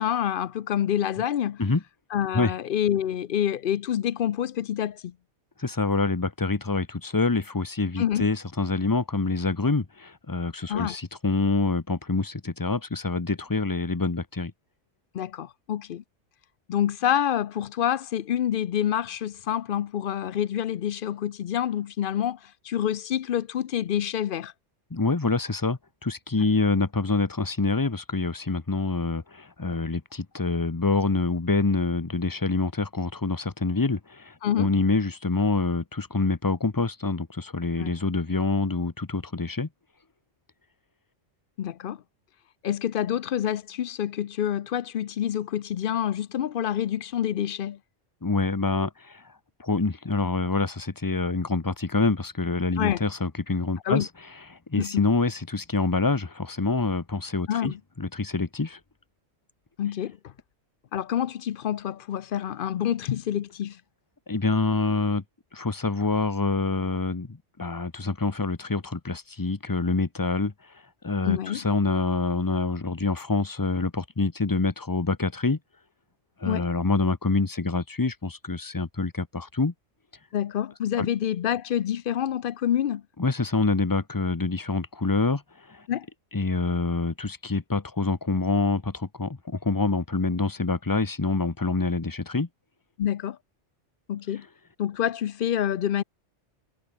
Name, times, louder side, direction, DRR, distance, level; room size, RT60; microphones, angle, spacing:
voice 1, 0.0-1.6 2.1-5.1 8.0-8.3 10.7-11.0 15.1-16.0 16.7-24.5 34.4-34.7 37.8-37.9 41.6-42.0 42.6-47.8 52.8-53.0 53.9-54.1 54.8-55.1 57.5-57.8 59.8-60.3 60.9-63.8 71.3-71.6 76.4-76.6 80.3-83.0 85.9-86.1 93.0-93.4 94.1-94.5 94.8-96.0, left 10 dB, 60° left, 0.7 m, -27 dB
voice 2, 5.6-14.5 24.9-39.7 48.2-49.2 49.6-54.1 54.7-58.8 64.3-65.2 65.5-70.5 71.0-75.6 76.4-79.7 81.0-81.1 83.2-85.4 85.7-85.9 86.3-92.5, left 3 dB, 20° left, 0.8 m, -26 dB
omnidirectional pair, 1.2 m